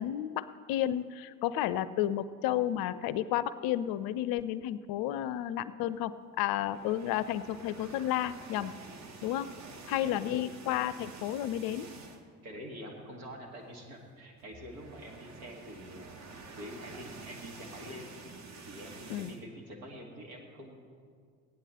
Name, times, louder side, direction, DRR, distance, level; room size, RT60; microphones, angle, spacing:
voice 1, 0.0-6.1 6.4-8.7 9.2-9.5 9.9-11.9 19.1-19.3, left 12 dB, 55° left, 16 dB, 0.5 m, -32 dB
sound 1, 6.6-12.4 12.8-13.0 13.2-13.3 14.4-19.4, right 4 dB, 35° right, 1.3 m, -49 dB
voice 2, 9.6-10.5 12.4-18.1 18.7-20.8, equal, 75° right, 1 dB, 1.9 m, -46 dB
15.5 x 9.8 x 4.2 m, 2.1 s
figure-of-eight pair, 55°, 45 cm